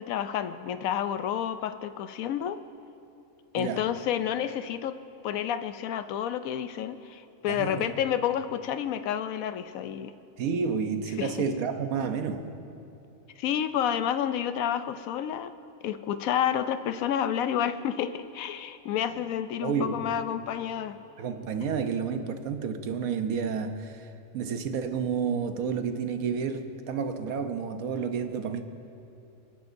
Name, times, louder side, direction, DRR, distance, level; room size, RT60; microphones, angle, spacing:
voice 1, 0.0-2.6 3.5-4.9 5.2-10.1 11.2-11.3 13.4-15.5 15.8-21.0, left 9 dB, 75° left, 11 dB, 1.0 m, -30 dB
voice 2, 7.5-7.9 10.4-12.5 19.1-19.2 19.6-20.0 21.2-28.6, right 6 dB, 75° right, 7 dB, 1.2 m, -30 dB
27.5 x 10.5 x 2.6 m, 2.7 s
omnidirectional pair, 1.5 m